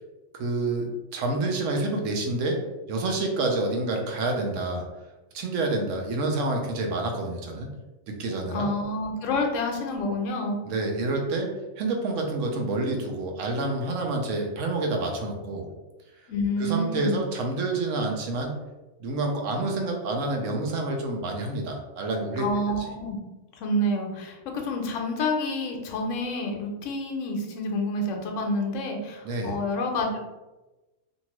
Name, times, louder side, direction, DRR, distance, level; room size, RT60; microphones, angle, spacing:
voice 1, 0.3-2.6 2.9-4.8 5.3-7.7 8.1-8.6 10.6-11.5 11.8-15.7 16.6-18.6 19.0-22.5 29.2-29.6, right 2 dB, 70° right, 2 dB, 1.0 m, -28 dB
voice 2, 8.5-10.6 16.3-17.2 22.4-23.2 23.5-30.2, left 1 dB, 70° left, 2 dB, 0.9 m, -28 dB
2.7 x 2.6 x 2.9 m, 1.1 s
omnidirectional pair, 1.4 m